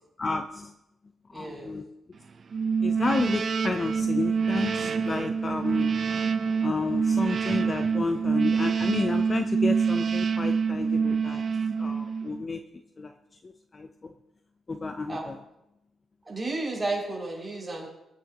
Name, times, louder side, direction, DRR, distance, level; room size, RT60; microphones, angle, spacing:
voice 1, 0.2-0.7 1.3-1.8 2.8-5.9 6.6-11.4 11.8-12.6 13.0-13.1 13.4-14.1 14.7-15.4, left 3 dB, 30° left, 6 dB, 0.7 m, -31 dB
voice 2, 1.3-1.7 15.1-15.3 16.3-17.9, right 2 dB, 10° right, -4 dB, 6.2 m, -32 dB
sound 1, 2.5-12.4, right 5 dB, 45° right, 0.8 m, -26 dB
23.5 x 9.0 x 3.0 m, 0.86 s
cardioid pair, 125°, 0 cm